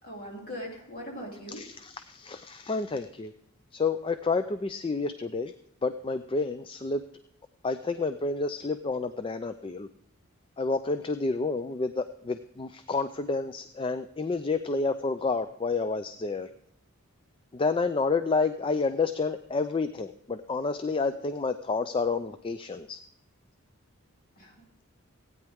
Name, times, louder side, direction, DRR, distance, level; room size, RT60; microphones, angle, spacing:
voice 1, 0.0-1.6 24.4-24.6, equal, 40° left, -1 dB, 2.8 m, -40 dB
voice 2, 1.5-3.3 3.7-5.5 5.8-7.0 7.6-9.9 10.6-16.5 17.5-23.0, left 4 dB, 25° left, 10 dB, 0.3 m, -29 dB
16.5 x 9.3 x 3.5 m, 0.77 s
head